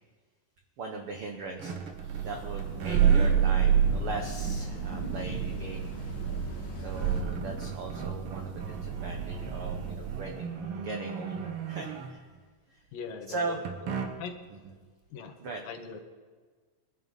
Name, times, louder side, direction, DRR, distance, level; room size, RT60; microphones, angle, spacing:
voice 1, 0.8-1.8 2.2-5.9 6.8-12.3 12.7-12.8 13.3-13.6 14.6-14.7 15.4-15.6, right 3 dB, 75° right, 3 dB, 1.3 m, -39 dB
sound 1, 1.6-2.3 2.6-3.4 4.1-4.2 6.2-6.3 6.6-12.4 13.6-14.4, right 5 dB, 60° right, 1.6 m, -38 dB
Thunder, 1.9-10.4, right 7 dB, 40° right, 1.9 m, -29 dB
sound 2, 2.2-7.2, left 1 dB, 40° left, 3.1 m, -44 dB
voice 2, 12.9-14.4 15.1-15.4 15.6-16.0, left 5 dB, 80° left, 6 dB, 3.0 m, -41 dB
24.5 x 11.0 x 4.0 m, 1.5 s
omnidirectional pair, 4.0 m